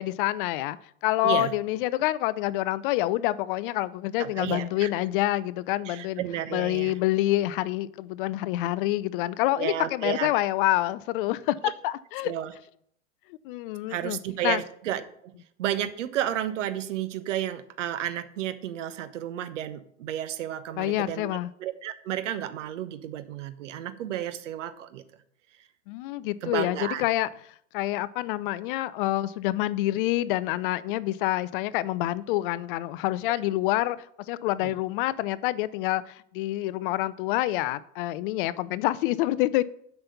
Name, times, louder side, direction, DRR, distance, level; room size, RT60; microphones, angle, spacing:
voice 1, 0.0-6.2 6.5-12.3 13.4-14.6 20.8-21.5 25.9-27.3 27.7-39.6, left 16 dB, 45° left, 0.5 m, -27 dB
voice 2, 4.2-4.9 5.9-6.9 9.6-10.3 12.2-12.5 13.9-15.3 15.6-21.3 21.6-25.0 26.4-27.0 34.6-34.7, right 11 dB, 70° right, 1.1 m, -32 dB
7.6 x 5.9 x 6.9 m
hypercardioid pair, 105°, 39 cm